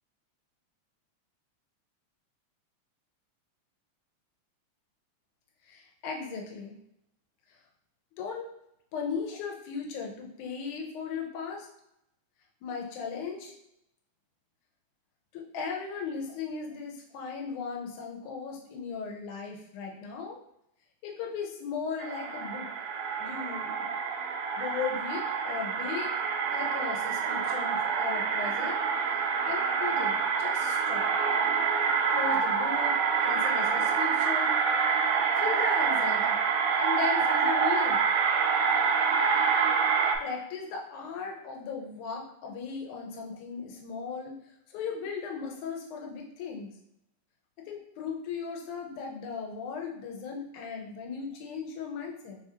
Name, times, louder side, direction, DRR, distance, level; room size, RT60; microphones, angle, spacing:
voice 1, 5.7-6.8 8.2-8.5 8.9-11.7 12.6-13.5 15.3-20.4 21.0-22.7 23.2-23.9 24.6-26.1 26.5-28.8 29.4-31.1 32.1-34.6 35.4-36.4 36.8-38.0 40.2-44.3 44.7-46.7 47.7-52.4, left 6 dB, 85° left, 1 dB, 2.2 m, -37 dB
sound 1, 22.0-40.2, right 6 dB, 85° right, 2.0 m, -27 dB
4.6 x 3.6 x 2.8 m, 0.80 s
omnidirectional pair, 3.4 m